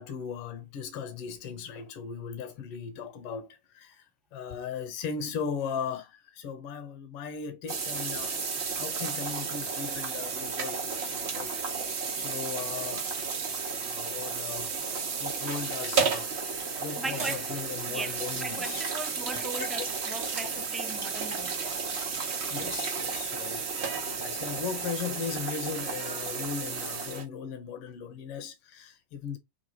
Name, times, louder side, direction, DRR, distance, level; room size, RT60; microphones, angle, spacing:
voice 1, 0.0-4.0 4.3-8.3 8.8-11.5 12.2-13.2 13.9-14.8 15.2-16.5 16.8-18.8 19.3-19.9 22.5-29.4, left 6 dB, 45° left, 0.5 m, -38 dB
sound 1, 7.7-27.2, right 5 dB, 50° right, 0.8 m, -33 dB
voice 2, 17.0-17.6 17.9-21.8, right 3 dB, 15° right, 0.4 m, -39 dB
3.3 x 2.0 x 2.7 m
figure-of-eight pair, 90°, 0 cm